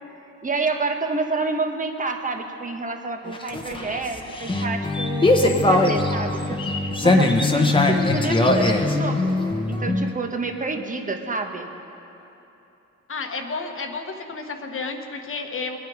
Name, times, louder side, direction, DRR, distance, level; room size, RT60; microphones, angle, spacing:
voice 1, 0.4-9.3 9.7-11.7, right 3 dB, 25° right, 4 dB, 1.4 m, -29 dB
sound 1, 3.3-10.1, left 2 dB, 15° left, 1.2 m, -21 dB
voice 2, 13.1-15.8, left 4 dB, 45° left, 4 dB, 1.4 m, -31 dB
21.0 x 9.4 x 5.1 m, 2.9 s
cardioid pair, 90°, 30 cm